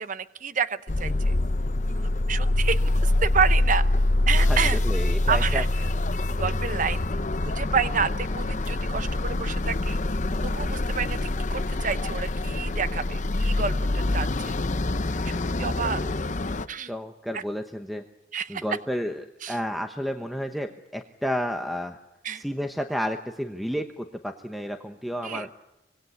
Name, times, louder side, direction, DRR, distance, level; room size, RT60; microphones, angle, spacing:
voice 1, 0.0-1.3 1.9-3.8 4.3-4.8 5.3-5.7 6.4-7.0 7.4-10.0 10.4-14.5 15.2-16.0 16.7-16.9 17.3-17.4 18.3-18.6 19.4-19.6 22.2-22.4 25.2-25.5, right 6 dB, 45° right, 13 dB, 0.8 m, -29 dB
sound 1, 0.9-16.7, left 2 dB, 40° left, 0.8 m, -25 dB
voice 2, 4.4-5.6 15.1-16.1 16.8-18.0 18.5-22.0 22.3-25.5, equal, ahead, 5 dB, 1.0 m, -32 dB
25.0 x 20.5 x 8.3 m, 0.97 s
head